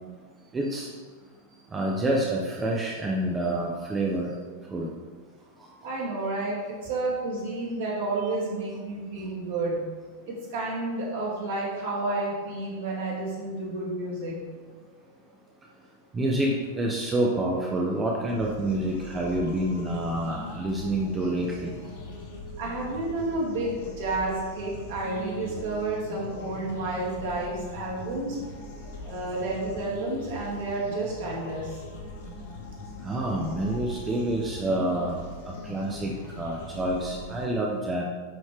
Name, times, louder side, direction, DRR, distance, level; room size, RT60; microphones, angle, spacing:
voice 1, 0.5-0.9 1.7-4.3 4.7-4.9 16.1-21.7 33.0-35.2 35.5-38.0, right 1 dB, 15° right, -2 dB, 0.8 m, -28 dB
voice 2, 5.8-9.8 10.3-14.4 22.6-28.4 29.0-31.8, right 2 dB, 55° right, -4 dB, 2.2 m, -30 dB
sound 1, 18.3-37.4, left 2 dB, 60° left, 1.4 m, -41 dB
10.5 x 4.3 x 3.3 m, 1.5 s
figure-of-eight pair, 90°, 0 cm